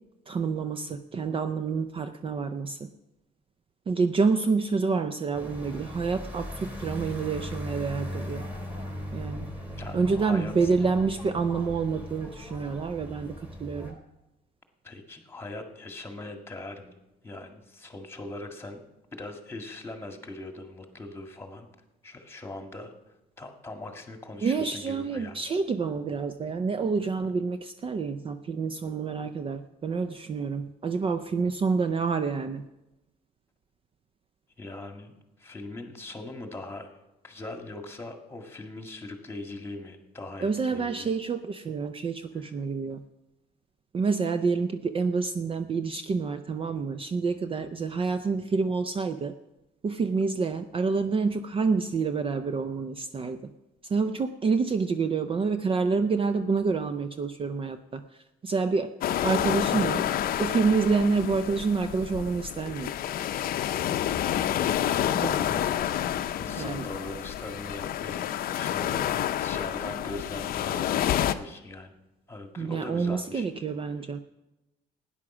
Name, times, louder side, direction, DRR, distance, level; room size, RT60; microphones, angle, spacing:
voice 1, 0.3-2.9 3.9-8.5 9.1-9.5 9.9-14.0 24.4-32.6 40.4-43.0 43.9-49.3 49.8-53.5 53.9-58.0 58.4-58.9 59.2-60.0 60.4-62.9 65.2-65.3 66.6-66.9 72.6-74.2, right 4 dB, 30° right, 10 dB, 0.5 m, -28 dB
sound 1, 5.3-13.9, left 1 dB, 10° right, 3.2 m, -38 dB
voice 2, 9.8-10.7 14.8-17.0 17.2-18.8 19.1-21.7 22.0-22.9 23.4-25.4 34.6-36.9 37.2-41.1 42.4-42.5 48.3-48.4 64.9-65.8 66.3-71.0 71.3-71.9 72.3-73.5, left 2 dB, 15° left, 5 dB, 1.8 m, -41 dB
sound 2, 59.0-71.3, left 11 dB, 60° left, 0.6 m, -29 dB
12.5 x 9.8 x 6.1 m, 0.98 s
cardioid pair, 110°, 17 cm